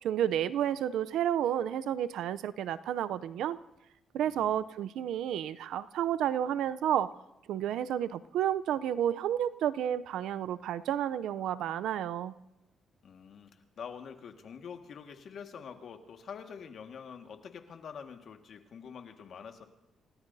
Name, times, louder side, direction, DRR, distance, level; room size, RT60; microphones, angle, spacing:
voice 1, 0.0-3.6 4.1-7.1 7.5-12.3, right 10 dB, 80° right, 14 dB, 0.5 m, -31 dB
voice 2, 4.2-4.6 13.0-19.7, left 7 dB, 60° left, 5 dB, 1.7 m, -46 dB
28.5 x 17.5 x 2.7 m, 0.90 s
cardioid pair, 90°, 0 cm